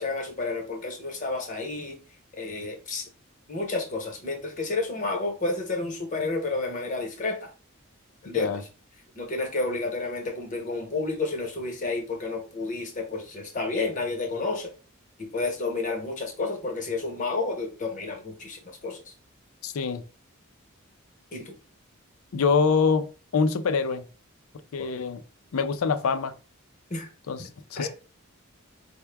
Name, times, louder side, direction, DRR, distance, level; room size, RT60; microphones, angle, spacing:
voice 1, 0.0-2.0 2.4-3.1 3.5-7.5 8.2-8.6 9.2-14.7 15.2-19.1 21.3-21.5 24.8-24.9 26.9-27.1 27.4-27.5 27.8-27.9, left 3 dB, 35° left, 0.9 m, -31 dB
voice 2, 19.6-20.0 22.3-23.1 23.3-24.1 24.7-25.2 25.5-26.3 27.3-27.4 27.7-27.9, left 5 dB, 80° left, 0.4 m, -24 dB
4.5 x 2.1 x 3.3 m
head